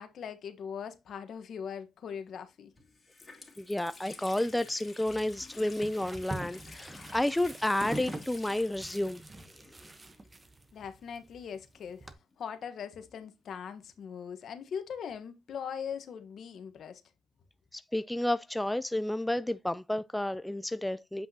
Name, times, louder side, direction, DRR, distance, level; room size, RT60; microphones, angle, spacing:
voice 1, 0.0-2.7 10.7-12.1 12.4-17.0, left 7 dB, 60° left, 1.2 m, -40 dB
Water tap faucet, 2.3-2.4 2.8-10.5 10.7-10.8 11.7-13.2, left 3 dB, 25° left, 2.5 m, -51 dB
voice 2, 3.6-9.2 17.7-21.3, left 1 dB, 5° left, 0.3 m, -31 dB
sound 1, 5.1-12.1, right 2 dB, 20° right, 0.9 m, -44 dB
8.0 x 5.4 x 2.8 m
cardioid pair, 90°, 0 cm